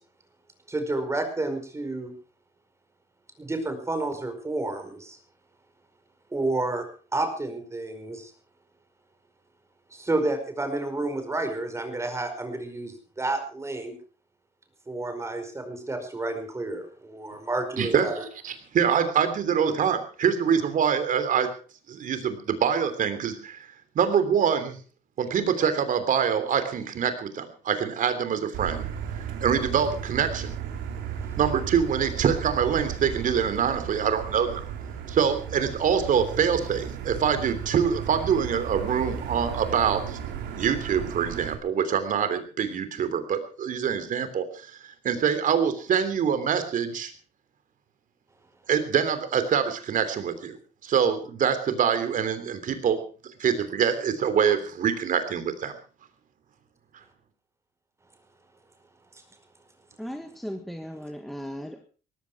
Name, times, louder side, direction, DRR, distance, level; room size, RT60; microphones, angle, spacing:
voice 1, 0.7-2.1 3.4-5.2 6.3-6.9 7.1-8.3 9.9-14.0 14.9-18.1, right 2 dB, 15° right, 7 dB, 5.0 m, -30 dB
voice 2, 17.8-21.5 21.9-23.7 23.9-24.8 25.2-28.9 29.4-30.5 31.4-34.6 35.1-40.2 40.6-44.8 45.0-47.1 48.7-50.6 50.8-55.7, right 7 dB, 50° right, 10 dB, 3.3 m, -25 dB
Motor vehicle (road), 28.5-41.5, right 8 dB, 85° right, 3.7 m, -35 dB
voice 3, 60.0-61.9, equal, ahead, 5 dB, 1.8 m, -37 dB
18.5 x 14.5 x 4.8 m, 0.38 s
cardioid pair, 110°, 17 cm